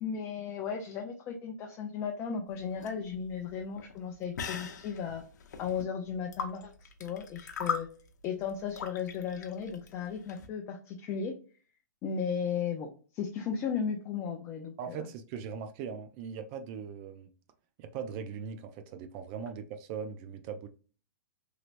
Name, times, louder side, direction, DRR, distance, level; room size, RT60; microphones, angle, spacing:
voice 1, 0.0-5.2 5.6-7.9 8.2-11.3 12.0-15.1, left 7 dB, 30° left, 0.5 m, -35 dB
sound 1, 2.5-10.5, left 6 dB, 75° left, 0.7 m, -40 dB
voice 2, 14.8-17.3 17.8-20.7, right 6 dB, 35° right, 0.4 m, -40 dB
3.2 x 2.9 x 2.4 m
hypercardioid pair, 135°, 10 cm